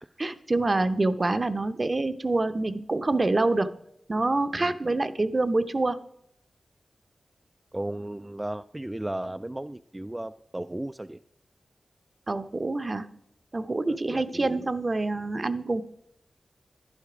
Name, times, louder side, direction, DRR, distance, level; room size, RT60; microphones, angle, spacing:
voice 1, 0.2-3.7 4.1-6.0 12.3-13.0 13.5-15.8, right 2 dB, 35° right, 12 dB, 0.7 m, -26 dB
voice 2, 7.7-11.2 13.9-14.5 15.4-15.5, right 1 dB, 15° right, 9 dB, 0.3 m, -35 dB
11.0 x 10.0 x 4.9 m, 0.74 s
wide cardioid pair, 70°, 0 cm